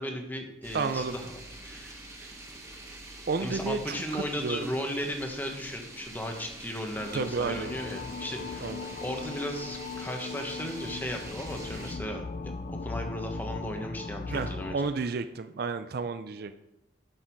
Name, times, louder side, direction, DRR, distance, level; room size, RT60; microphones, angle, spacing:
voice 1, 0.0-1.3 1.6-2.0 3.4-8.7 9.0-12.2 12.7-14.8, equal, 10° left, 3 dB, 1.2 m, -36 dB
sound 1, 0.6-12.0, right 2 dB, 15° right, 1.3 m, -46 dB
voice 2, 0.7-1.1 2.2-2.3 3.3-4.7 7.1-7.7 8.6-8.9 14.3-16.5, right 4 dB, 55° right, 11 dB, 0.4 m, -32 dB
sound 2, 6.9-14.7, left 4 dB, 40° left, 0.4 m, -38 dB
11.0 x 6.7 x 4.6 m, 0.92 s
head